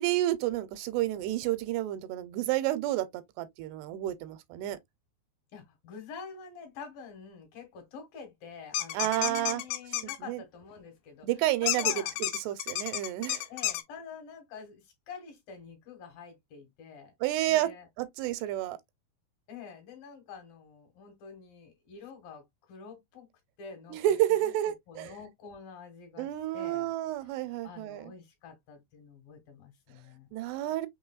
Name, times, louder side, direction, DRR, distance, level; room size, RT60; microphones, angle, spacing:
voice 1, 0.0-4.8 8.9-9.6 10.0-10.4 11.2-13.5 17.2-17.7 18.0-18.8 23.9-25.1 26.2-28.1 30.3-30.9, right 14 dB, 85° right, 2.7 m, -30 dB
voice 2, 5.5-11.3 11.6-12.1 13.5-17.1 17.5-17.9 19.5-23.3 23.6-24.2 24.4-24.5 24.9-26.9 27.6-30.4, left 5 dB, 65° left, 3.0 m, -47 dB
sound 1, 8.7-10.2 11.7-13.8, left 14 dB, 85° left, 2.8 m, -31 dB
6.1 x 3.3 x 2.3 m
omnidirectional pair, 4.7 m